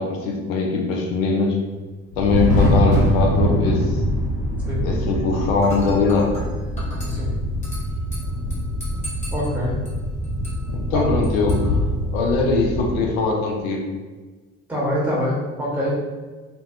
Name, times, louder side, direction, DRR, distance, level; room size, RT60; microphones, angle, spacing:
voice 1, 0.0-1.6 2.2-4.0 4.8-6.3 10.7-11.8 12.1-13.9, left 4 dB, 75° left, 0 dB, 0.6 m, -21 dB
Thunder, 2.1-12.0, equal, 55° left, 1.5 m, -24 dB
sound 1, 2.1-13.0, equal, 30° left, 0.8 m, -29 dB
Dishes pots and pans / Glass, 5.6-12.6, equal, 15° left, 1.2 m, -41 dB
voice 2, 9.3-9.8 10.9-11.0 14.7-15.9, equal, 5° right, -6 dB, 0.9 m, -25 dB
2.6 x 2.2 x 2.4 m, 1.3 s
figure-of-eight pair, 50°, 41 cm